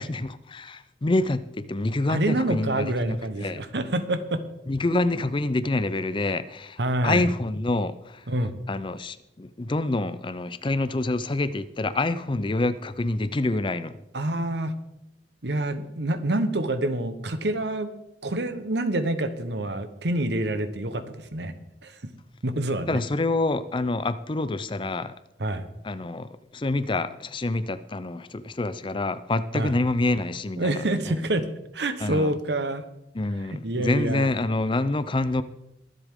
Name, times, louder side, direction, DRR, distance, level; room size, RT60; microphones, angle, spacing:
voice 1, 0.0-3.6 4.7-8.2 8.7-14.0 22.9-25.1 25.8-30.7 31.1-31.2 32.0-32.4 33.1-35.4, left 2 dB, 30° left, 0.5 m, -27 dB
voice 2, 2.1-4.4 6.8-7.3 8.3-8.6 14.1-14.7 15.4-17.9 18.2-21.5 21.8-22.0 22.4-23.0 25.4-25.7 29.5-29.7 30.6-31.5 31.7-32.8 33.5-34.3, right 1 dB, 70° right, 1.1 m, -27 dB
23.0 x 8.1 x 3.7 m
head